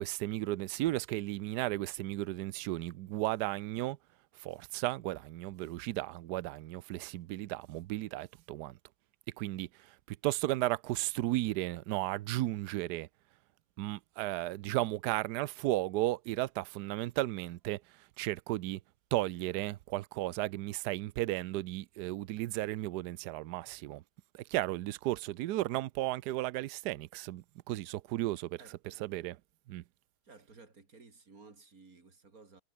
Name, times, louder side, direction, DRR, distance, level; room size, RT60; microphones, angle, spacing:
voice 1, 0.0-4.0 4.4-8.7 9.4-9.7 10.2-13.1 13.8-17.8 18.2-18.8 19.1-24.0 24.3-28.6 29.0-29.3 29.7-29.8, right 16 dB, 85° right, 0.9 m, -34 dB
voice 2, 28.6-29.0 30.2-32.6, right 4 dB, 40° right, 3.6 m, -56 dB
omnidirectional pair, 2.4 m